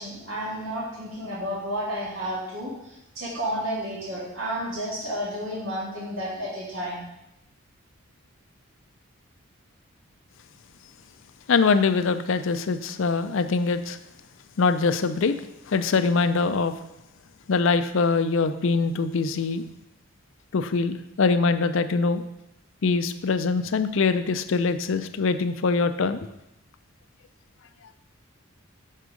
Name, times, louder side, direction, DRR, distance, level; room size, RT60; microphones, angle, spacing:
voice 1, 0.0-7.0, equal, 65° right, -5 dB, 2.0 m, -31 dB
voice 2, 11.5-14.0 14.6-15.3 15.7-16.7 17.5-19.6 20.5-22.2 22.8-26.2, left 4 dB, 60° left, 10 dB, 0.4 m, -23 dB
6.6 x 4.6 x 5.0 m, 0.85 s
head